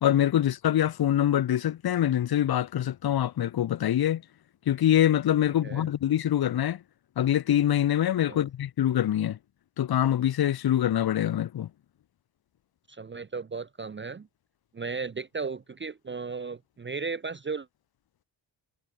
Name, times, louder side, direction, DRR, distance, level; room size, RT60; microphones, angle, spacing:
voice 1, 0.0-4.2 4.7-6.8 7.2-9.4 9.8-11.7, left 11 dB, 55° left, 0.8 m, -24 dB
voice 2, 12.9-14.3 14.7-17.7, right 4 dB, 25° right, 0.6 m, -35 dB
wide cardioid pair, 165°, 46 cm